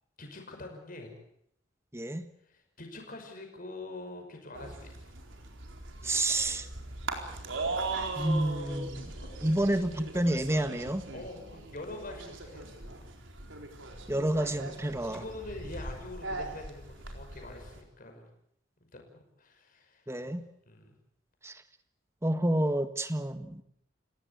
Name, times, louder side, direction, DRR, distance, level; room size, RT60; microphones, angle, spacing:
voice 1, 0.2-1.1 2.5-5.1 9.2-9.4 9.8-9.9 11.1-13.0 15.0-18.3 18.9-20.4 20.7-21.0, left 2 dB, 45° left, 4 dB, 5.6 m, -45 dB
voice 2, 1.9-2.3 6.0-6.7 8.2-9.0 9.4-11.0 14.1-15.2 20.1-20.4 21.4-21.6 22.2-23.6, right 1 dB, 15° right, 10 dB, 1.5 m, -29 dB
sound 1, 4.5-17.8, right 3 dB, 80° right, 4.3 m, -40 dB
29.5 x 17.0 x 8.3 m, 0.73 s
head